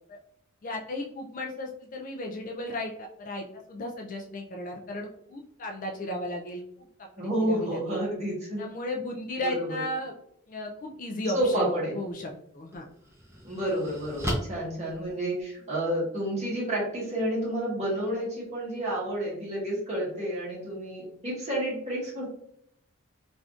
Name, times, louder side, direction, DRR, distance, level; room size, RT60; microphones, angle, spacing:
voice 1, 0.6-6.6 7.2-8.0 8.6-10.1 10.5-12.9, left 1 dB, 35° left, 1 dB, 0.3 m, -35 dB
voice 2, 7.2-8.6 9.4-9.8 11.3-12.0 13.4-22.3, right 1 dB, 30° right, -5 dB, 1.2 m, -30 dB
sound 1, 12.0-12.1 12.7-15.7, equal, 10° right, 0.7 m, -36 dB
3.5 x 2.5 x 2.4 m, 0.73 s
head